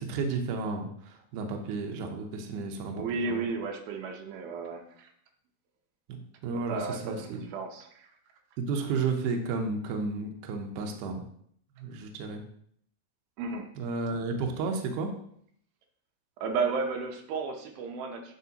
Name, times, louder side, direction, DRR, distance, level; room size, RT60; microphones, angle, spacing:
voice 1, 0.0-3.5 6.1-7.5 8.6-11.2 11.8-12.4 13.8-15.1, right 4 dB, 70° right, 3 dB, 2.1 m, -32 dB
voice 2, 2.9-5.1 6.7-8.1 13.4-13.7 16.4-18.3, right 4 dB, 90° right, 3 dB, 2.7 m, -33 dB
8.1 x 5.4 x 2.8 m, 0.65 s
omnidirectional pair, 4.1 m